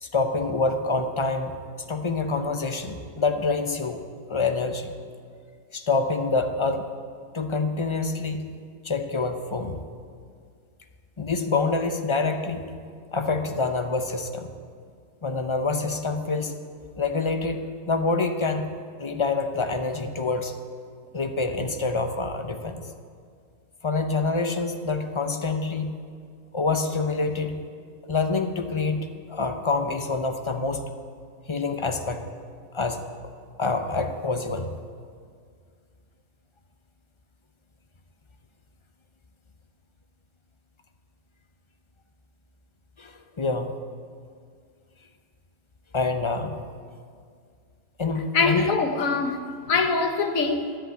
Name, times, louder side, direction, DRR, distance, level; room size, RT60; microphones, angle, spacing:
voice 1, 0.0-1.6 1.9-4.0 4.3-4.9 5.7-6.8 7.3-8.5 8.8-9.8 11.2-12.6 13.1-14.5 15.2-16.6 17.0-17.6 17.9-18.7 19.0-20.6 21.1-22.8 23.8-26.0 26.5-27.6 28.1-30.8 31.5-32.2 32.7-33.0 33.6-34.7 43.0-43.7 45.9-46.6 48.0-48.7, left 3 dB, 30° left, 7 dB, 0.6 m, -26 dB
voice 2, 48.3-49.4 49.7-50.7, left 4 dB, 70° left, 6 dB, 1.4 m, -23 dB
13.5 x 7.6 x 8.4 m, 2.1 s
omnidirectional pair, 1.5 m